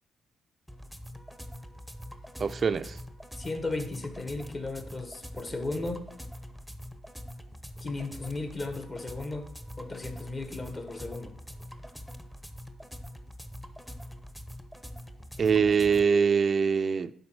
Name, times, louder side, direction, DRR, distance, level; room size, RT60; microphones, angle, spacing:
sound 1, 0.7-16.0, equal, 5° left, 0.8 m, -44 dB
voice 1, 2.4-3.0 15.4-17.1, right 6 dB, 45° right, 0.4 m, -24 dB
voice 2, 3.4-6.1 7.8-11.3, left 2 dB, 35° left, 1.5 m, -35 dB
11.0 x 4.0 x 6.2 m
cardioid pair, 90°, 0 cm